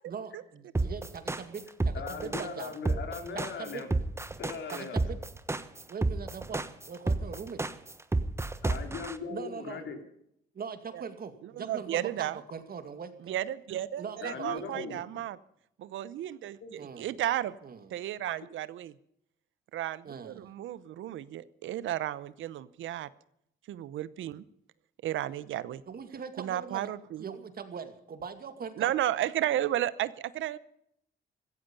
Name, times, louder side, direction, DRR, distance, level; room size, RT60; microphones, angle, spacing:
voice 1, 0.1-2.7 3.3-3.8 4.7-5.2 5.9-7.6 9.3-9.9 10.5-13.4 14.0-14.8 16.8-17.2 17.6-17.9 20.0-20.5 25.9-26.9 27.2-28.9, right 6 dB, 50° right, 9 dB, 2.3 m, -41 dB
sound 1, 0.7-9.1, right 2 dB, 15° right, 1.1 m, -30 dB
voice 2, 1.9-3.9 4.4-5.0 8.6-10.0 14.2-15.0 16.6-16.7, left 5 dB, 65° left, 5 dB, 3.6 m, -39 dB
voice 3, 11.5-12.4 13.3-15.4 15.8-17.5 17.9-18.9 19.7-23.1 23.7-24.4 25.0-25.8 26.4-27.3 28.8-30.6, right 12 dB, 75° right, 17 dB, 0.8 m, -33 dB
16.0 x 15.0 x 5.4 m, 0.74 s
cardioid pair, 90°, 20 cm